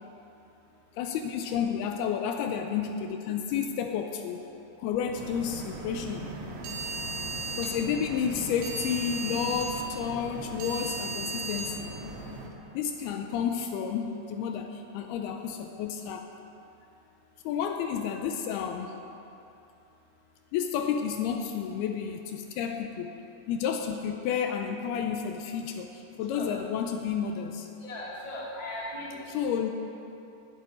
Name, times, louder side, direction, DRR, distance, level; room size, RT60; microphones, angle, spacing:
voice 1, 1.0-4.4 4.8-6.3 7.6-11.9 12.7-16.3 17.4-19.0 20.5-23.1 23.5-27.7 29.3-29.7, left 7 dB, 80° left, 5 dB, 2.4 m, -31 dB
sound 1, 5.2-12.5, right 2 dB, 85° right, 3.8 m, -36 dB
voice 2, 27.8-29.4, left 1 dB, 15° left, -6 dB, 1.8 m, -38 dB
11.5 x 7.8 x 9.7 m, 2.8 s
omnidirectional pair, 5.0 m